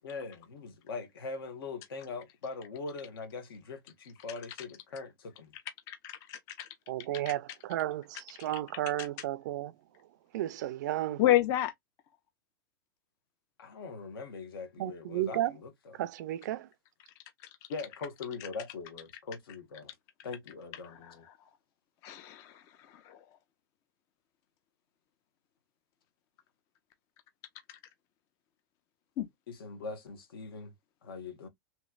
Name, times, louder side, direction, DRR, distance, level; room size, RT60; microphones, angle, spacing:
voice 1, 0.0-5.5 13.6-16.0 17.7-19.9 20.2-21.3 29.5-30.7 31.0-31.5, left 4 dB, 75° left, 1.3 m, -42 dB
voice 2, 5.9-6.7 11.2-11.7 21.0-21.1 22.0-23.2 29.2-29.3, left 13 dB, 25° left, 0.3 m, -30 dB
voice 3, 6.9-9.7 10.3-11.2 14.8-15.5 16.0-16.7, right 13 dB, 50° right, 0.4 m, -33 dB
3.0 x 3.0 x 2.3 m
supercardioid pair, 160°, 12 cm